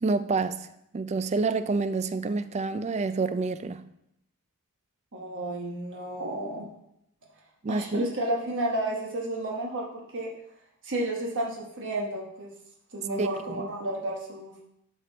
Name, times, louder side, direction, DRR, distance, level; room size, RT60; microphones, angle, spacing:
voice 1, 0.0-0.6 0.9-3.8 7.6-8.1 13.2-13.6, right 3 dB, 30° right, 12 dB, 0.3 m, -28 dB
voice 2, 5.1-6.7 7.7-10.3 10.8-12.5 12.9-14.5, right 1 dB, 55° right, -1 dB, 1.2 m, -31 dB
12.0 x 4.4 x 4.0 m, 0.80 s
head